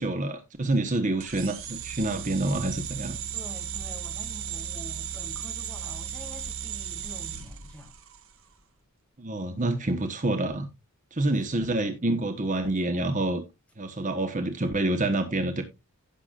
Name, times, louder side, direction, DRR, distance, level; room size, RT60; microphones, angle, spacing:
voice 1, 0.0-3.2 9.2-10.7 11.1-13.4 13.8-15.6, right 2 dB, 35° right, 1.1 m, -27 dB
sound 1, 1.2-8.3, right 8 dB, 65° right, 1.5 m, -36 dB
voice 2, 3.3-7.9 11.5-11.7, left 1 dB, 5° left, 2.4 m, -47 dB
16.0 x 6.9 x 2.5 m
head